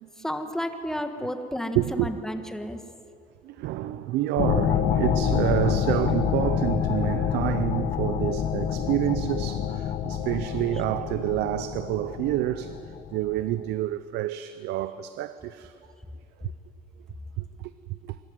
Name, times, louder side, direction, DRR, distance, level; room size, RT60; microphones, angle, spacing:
voice 1, 0.2-2.8, equal, 5° left, 1.5 m, -32 dB
voice 2, 1.7-2.1 3.4-15.8 16.4-16.5 17.4-18.2, right 14 dB, 85° right, 0.6 m, -28 dB
sound 1, 4.4-13.5, left 9 dB, 75° left, 1.5 m, -27 dB
24.0 x 13.5 x 9.5 m
cardioid pair, 110°, 17 cm